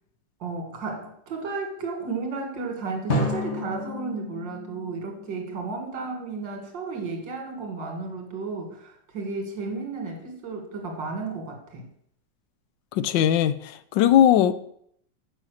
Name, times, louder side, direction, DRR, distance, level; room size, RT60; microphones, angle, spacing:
voice 1, 0.4-11.8, right 4 dB, 80° right, 2 dB, 2.4 m, -33 dB
Drum, 3.1-5.8, left 1 dB, 40° left, 1.6 m, -31 dB
voice 2, 12.9-14.5, left 10 dB, 85° left, 13 dB, 1.3 m, -19 dB
6.6 x 5.7 x 6.2 m, 0.68 s
omnidirectional pair, 2.0 m